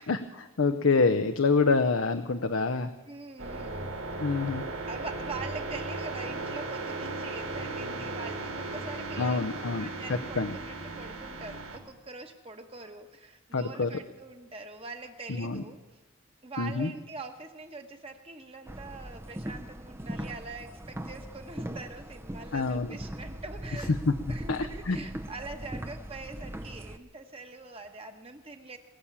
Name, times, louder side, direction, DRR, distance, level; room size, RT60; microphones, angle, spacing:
voice 1, 0.0-2.9 4.2-4.6 9.2-10.5 13.5-13.9 15.3-15.6 16.6-16.9 22.5-22.9 23.9-24.0 24.5-25.0, left 4 dB, 65° left, 9 dB, 0.7 m, -27 dB
voice 2, 3.1-4.3 4.9-15.8 16.4-23.9 24.3-28.8, right 3 dB, 25° right, 5 dB, 1.2 m, -43 dB
sound 1, 3.4-11.8, right 2 dB, 75° right, 3.1 m, -36 dB
sound 2, 18.7-27.0, right 1 dB, 10° right, 0.5 m, -40 dB
21.5 x 7.2 x 8.8 m, 1.2 s
head